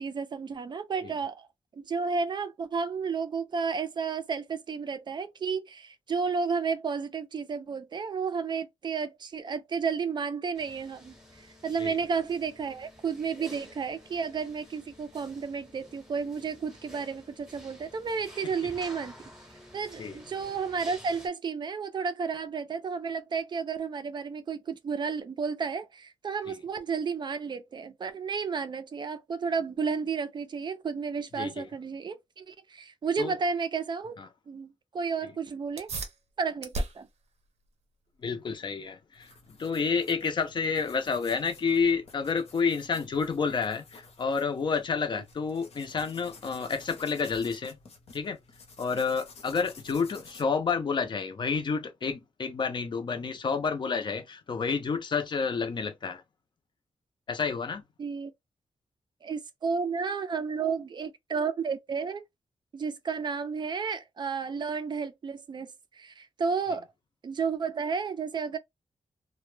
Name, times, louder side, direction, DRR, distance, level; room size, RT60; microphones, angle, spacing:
voice 1, 0.0-1.5 1.7-19.1 19.7-34.2 34.5-35.9 36.4-37.1 58.0-58.3 59.2-62.2 62.7-66.9 67.2-68.6, right 5 dB, 45° right, 0.4 m, -32 dB
sound 1, 10.5-21.3, left 1 dB, 5° right, 0.8 m, -51 dB
voice 2, 31.4-31.7 33.2-33.4 34.2-34.3 35.2-35.3 38.2-47.8 48.1-48.4 48.8-56.2 57.3-57.8, left 5 dB, 45° left, 0.5 m, -30 dB
sound 2, 35.6-45.7, right 2 dB, 80° right, 0.6 m, -43 dB
sound 3, 39.1-50.4, left 4 dB, 70° left, 0.8 m, -52 dB
2.1 x 2.1 x 3.1 m
wide cardioid pair, 155°, 11 cm